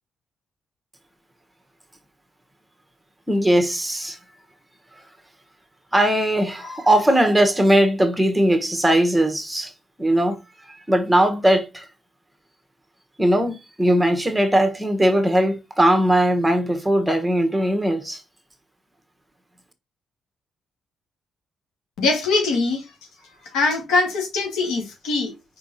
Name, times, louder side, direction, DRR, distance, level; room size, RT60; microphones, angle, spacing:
voice 1, 3.3-4.2 5.9-9.7 10.0-10.4 10.9-11.9 13.2-18.2, right 1 dB, 10° right, 1.2 m, -19 dB
voice 2, 22.0-22.9 23.5-25.3, left 3 dB, 90° left, 2.0 m, -22 dB
4.8 x 4.7 x 4.1 m
cardioid pair, 90°, 0 cm